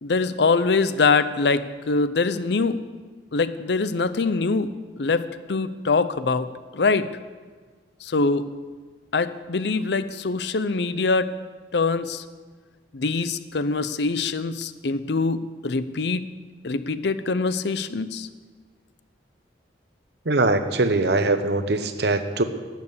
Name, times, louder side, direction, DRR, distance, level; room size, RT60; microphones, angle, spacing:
voice 1, 0.0-2.8 3.3-6.5 6.7-7.1 8.0-8.5 9.1-11.3 11.7-12.2 12.9-16.3 16.6-18.3, left 4 dB, 65° left, 13 dB, 0.6 m, -23 dB
voice 2, 20.3-22.4, right 2 dB, 60° right, 9 dB, 0.9 m, -22 dB
12.0 x 9.3 x 6.8 m, 1.5 s
head